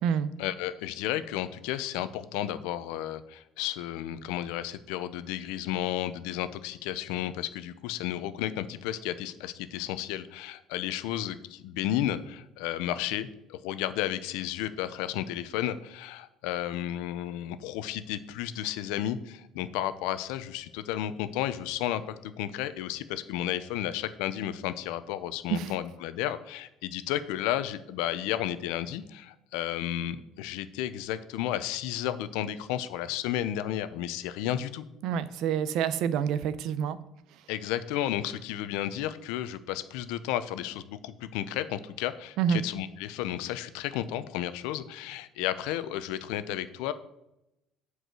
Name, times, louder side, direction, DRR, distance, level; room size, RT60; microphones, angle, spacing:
voice 1, 0.4-34.8 37.5-46.9, left 12 dB, 85° left, 12 dB, 0.6 m, -33 dB
voice 2, 35.0-37.0 37.3-37.5 42.4-42.6, right 8 dB, 70° right, 14 dB, 0.6 m, -28 dB
8.0 x 4.7 x 6.1 m, 0.87 s
cardioid pair, 115°, 0 cm